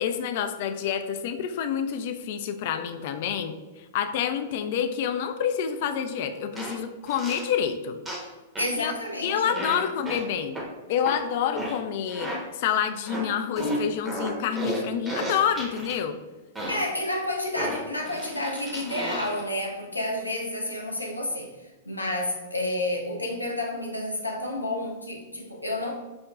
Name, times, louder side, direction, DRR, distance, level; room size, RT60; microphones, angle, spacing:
voice 1, 0.0-8.0 8.8-8.9 9.2-10.6 10.9-16.2, left 8 dB, 50° left, 8 dB, 0.3 m, -28 dB
sound 1, 6.5-6.7 7.1-7.5 8.0-8.3 8.5-8.8 9.5-9.8 10.0-10.2 10.5-10.6 11.0-11.2 11.5-11.8 12.1-12.4 13.1-13.2 13.5-16.0 16.5-16.8 17.5-19.4, right 1 dB, 15° right, 0.9 m, -33 dB
voice 2, 8.6-9.6 16.7-25.9, left 1 dB, 90° left, 0 dB, 0.6 m, -30 dB
6.1 x 2.1 x 2.3 m, 1.2 s
figure-of-eight pair, 100°, 0 cm